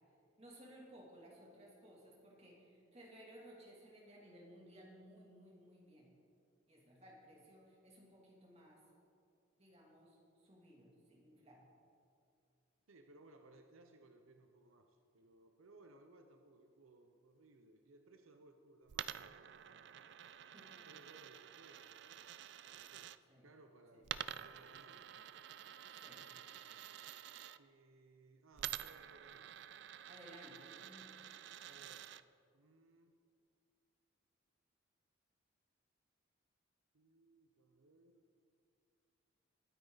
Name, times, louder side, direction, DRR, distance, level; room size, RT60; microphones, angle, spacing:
voice 1, 0.4-6.1 6.7-8.8 9.6-11.6 20.5-20.8 23.3-23.5 23.9-24.0 26.0-26.3 30.1-31.1, equal, 30° right, -3 dB, 2.8 m, -59 dB
voice 2, 12.9-19.8 20.8-22.3 22.7-23.1 23.4-25.1 27.6-29.5 31.6-32.1 32.5-33.2 36.9-38.2, right 2 dB, 80° right, 5 dB, 0.7 m, -63 dB
Coin (dropping), 18.9-23.2 24.0-27.6 28.6-32.2, right 10 dB, 55° right, 0.3 m, -49 dB
21.5 x 9.2 x 4.0 m, 2.5 s
head